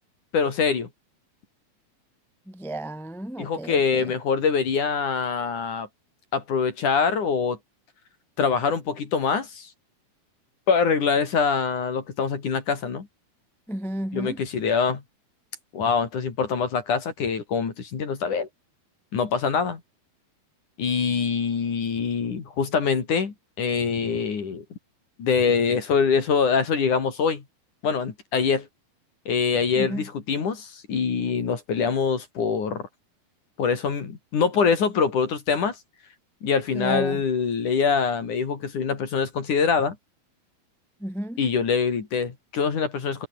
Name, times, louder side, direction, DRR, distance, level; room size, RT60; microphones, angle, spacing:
voice 1, 0.3-0.9 3.4-5.9 6.3-7.6 8.4-9.7 10.7-13.1 14.1-15.0 15.7-18.5 19.1-19.8 20.8-24.6 25.2-27.4 27.8-28.7 29.3-32.9 33.6-35.8 36.4-40.0 41.4-43.3, left 5 dB, 55° left, 4.6 m, -24 dB
voice 2, 2.5-4.1 13.7-14.4 29.7-30.1 36.7-37.2 41.0-41.4, right 1 dB, 5° left, 0.4 m, -32 dB
omnidirectional pair, 4.4 m